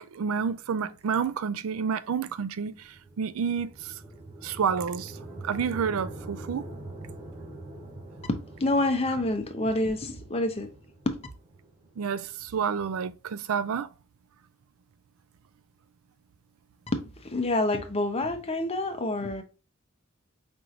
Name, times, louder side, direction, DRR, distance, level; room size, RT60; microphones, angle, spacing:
voice 1, 0.0-3.9 4.4-5.2 5.4-6.6 12.0-13.9, right 6 dB, 70° right, 0.4 m, -29 dB
sound 1, 2.5-12.7, right 2 dB, 30° right, 0.8 m, -44 dB
voice 2, 8.3-10.7 11.1-11.2 16.9-19.4, left 2 dB, 30° left, 0.8 m, -27 dB
5.2 x 3.1 x 2.5 m
head